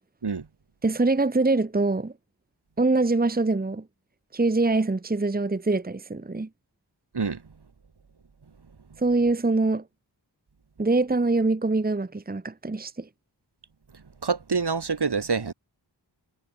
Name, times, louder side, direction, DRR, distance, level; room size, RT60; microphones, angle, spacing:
voice 1, 0.8-2.1 2.8-3.8 4.3-6.5 9.0-9.8 10.8-13.1, right 3 dB, 20° right, 1.0 m, -24 dB
voice 2, 13.9-15.5, right 5 dB, 60° right, 1.8 m, -27 dB
wide cardioid pair, 50°, 44 cm